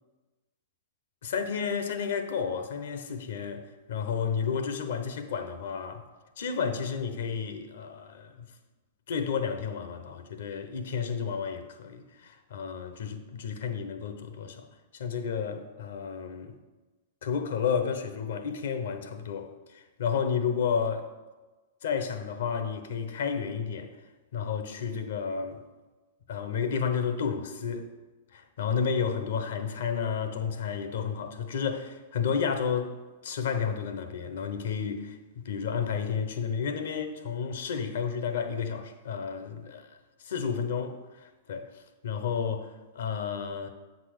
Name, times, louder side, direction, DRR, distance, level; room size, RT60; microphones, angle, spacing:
voice 1, 1.2-6.1 6.4-8.5 9.1-14.7 14.9-16.6 17.2-21.1 21.8-23.9 24.3-25.6 26.3-27.9 28.3-32.9 33.2-35.2 35.4-43.7, left 6 dB, 70° left, 0.8 m, -31 dB
7.8 x 4.2 x 6.3 m
hypercardioid pair, 110°, 0 cm